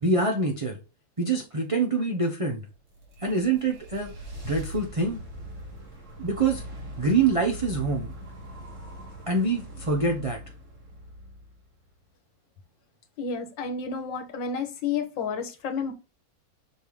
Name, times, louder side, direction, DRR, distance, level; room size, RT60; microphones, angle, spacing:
voice 1, 0.0-0.8 1.2-2.6 3.2-4.1 4.4-5.2 6.2-6.6 7.0-8.1 9.3-10.4, right 3 dB, 25° right, 0.7 m, -25 dB
sound 1, 2.7-12.0, right 1 dB, 40° right, 2.2 m, -41 dB
voice 2, 13.2-15.9, left 5 dB, 80° left, 1.8 m, -31 dB
6.8 x 3.6 x 4.8 m
omnidirectional pair, 2.0 m